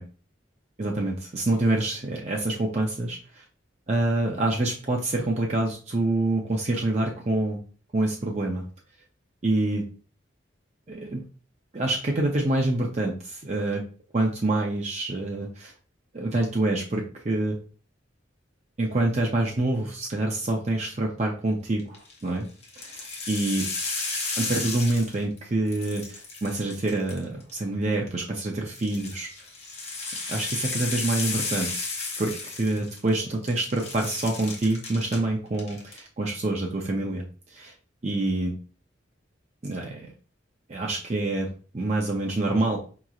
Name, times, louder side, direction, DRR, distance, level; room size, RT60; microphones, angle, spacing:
voice 1, 0.8-3.2 3.9-7.6 7.9-8.6 9.4-9.9 10.9-11.2 11.7-13.8 14.1-15.7 16.1-17.6 18.8-22.5 22.8-23.0 23.3-23.7 24.4-29.3 30.3-31.8 32.2-37.2 37.5-37.7 38.0-38.6 39.6-40.1 40.7-42.8, right 2 dB, 35° right, 0 dB, 0.6 m, -26 dB
sound 1, 21.8-22.1 22.6-25.4 25.7-27.5 28.7-33.2 33.5-35.2 35.5-36.0, left 3 dB, 35° left, 0.9 m, -33 dB
5.0 x 3.0 x 2.4 m, 0.38 s
head